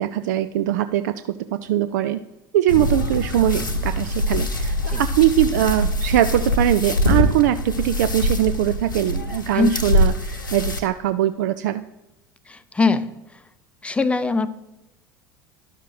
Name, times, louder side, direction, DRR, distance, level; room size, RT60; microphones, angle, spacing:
voice 1, 0.0-2.2 2.5-11.8, right 12 dB, 60° right, 11 dB, 0.4 m, -21 dB
sound 1, 2.7-10.8, left 1 dB, 85° left, 1.0 m, -23 dB
voice 2, 12.5-13.4 13.8-14.5, left 3 dB, 10° left, 13 dB, 0.6 m, -22 dB
11.5 x 6.3 x 4.0 m, 0.95 s
figure-of-eight pair, 70°, 10 cm